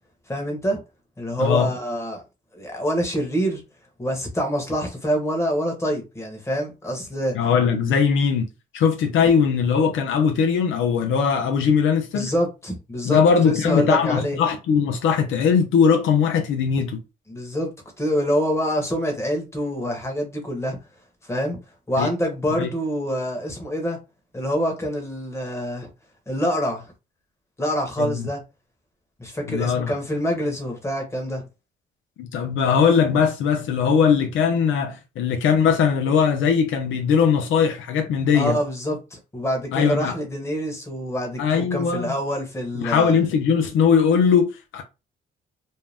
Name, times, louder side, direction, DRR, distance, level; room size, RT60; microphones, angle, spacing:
voice 1, 0.3-0.8 1.2-2.2 2.5-3.6 4.0-7.4 12.1-14.4 17.3-20.8 21.3-21.6 21.9-24.0 24.3-25.9 26.3-26.9 27.6-28.4 29.2-31.4 38.3-43.2, equal, 15° left, 1.0 m, -26 dB
voice 2, 7.3-8.5 8.7-12.3 13.0-17.0 22.0-22.1 22.6-22.7 28.0-28.3 29.4-29.9 32.2-38.6 39.7-40.2 41.4-42.1 42.8-44.8, left 6 dB, 80° left, 0.6 m, -20 dB
2.6 x 2.0 x 3.3 m
cardioid pair, 90°, 20 cm